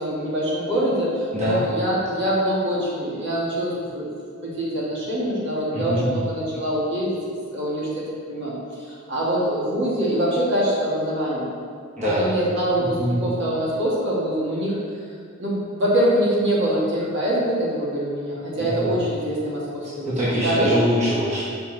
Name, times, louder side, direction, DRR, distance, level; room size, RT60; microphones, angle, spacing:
voice 1, 0.0-4.1 4.4-7.2 7.5-8.5 8.9-11.5 12.2-14.8 15.4-20.1 20.4-20.7, right 1 dB, 55° right, -6 dB, 1.6 m, -24 dB
voice 2, 5.7-6.1 12.0-12.3 12.8-13.2 18.6-18.9 20.0-21.4, equal, 30° right, -10 dB, 1.3 m, -23 dB
5.8 x 5.5 x 3.9 m, 2.2 s
head